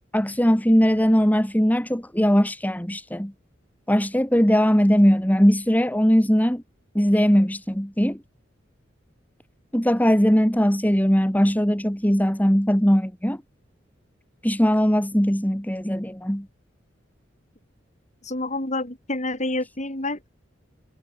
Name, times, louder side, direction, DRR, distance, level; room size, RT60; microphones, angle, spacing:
voice 1, 0.0-3.3 3.9-6.6 6.9-8.2 9.7-13.4 14.4-16.5, equal, 10° left, 2.9 m, -20 dB
voice 2, 18.2-20.3, left 2 dB, 40° left, 7.0 m, -28 dB
head